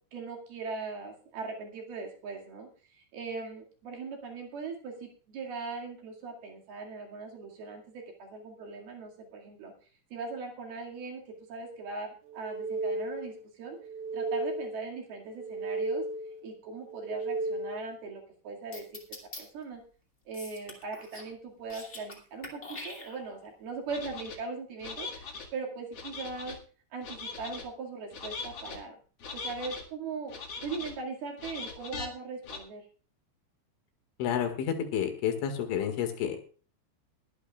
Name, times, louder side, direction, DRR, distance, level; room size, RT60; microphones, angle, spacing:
voice 1, 0.1-9.7 10.1-13.8 14.1-16.1 16.4-19.0 19.4-19.8 20.3-26.6 26.9-29.0 29.3-30.3 30.6-32.9, right 4 dB, 60° right, 1 dB, 3.8 m, -40 dB
sound 1, 12.3-13.4 13.8-14.9 15.3-16.4 16.8-18.0, right 2 dB, 90° right, 4.3 m, -34 dB
sound 2, 18.7-19.4 20.3-21.3 21.6-22.2 22.4-23.5, left 2 dB, 30° left, 1.3 m, -44 dB
sound 3, 23.9-24.4 24.8-25.5 25.9-26.6 27.0-27.6 28.1-28.8 29.2-29.8 30.3-30.9 31.4-32.1 32.4-32.6, left 4 dB, 50° left, 1.9 m, -40 dB
voice 2, 34.2-36.4, left 9 dB, 80° left, 6 dB, 4.2 m, -30 dB
21.5 x 11.5 x 2.4 m, 0.38 s
omnidirectional pair, 5.6 m